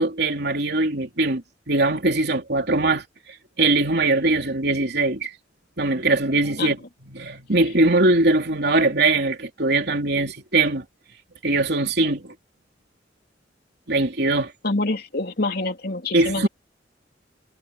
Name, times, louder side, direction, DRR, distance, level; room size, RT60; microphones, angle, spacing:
voice 1, 0.0-3.0 3.6-5.3 5.8-6.8 7.1-10.8 11.4-12.3 13.9-14.5 16.1-16.5, right 2 dB, 60° right, 3.4 m, -21 dB
voice 2, 14.6-16.5, left 2 dB, 55° left, 3.1 m, -26 dB
head